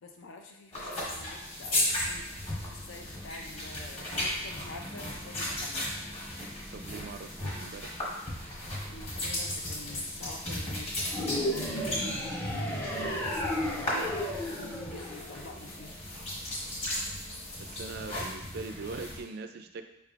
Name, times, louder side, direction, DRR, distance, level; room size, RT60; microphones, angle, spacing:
voice 1, 0.0-5.9 8.7-11.0 12.6-16.0 17.2-17.4, left 3 dB, 65° left, 3 dB, 0.4 m, -47 dB
sound 1, 0.7-19.2, left 1 dB, 30° left, 1.2 m, -36 dB
voice 2, 6.7-7.9 12.6-12.8 17.6-19.8, right 4 dB, 50° right, 7 dB, 0.3 m, -41 dB
sound 2, 11.1-15.6, equal, 10° left, 0.5 m, -33 dB
5.1 x 3.3 x 2.4 m, 0.84 s
head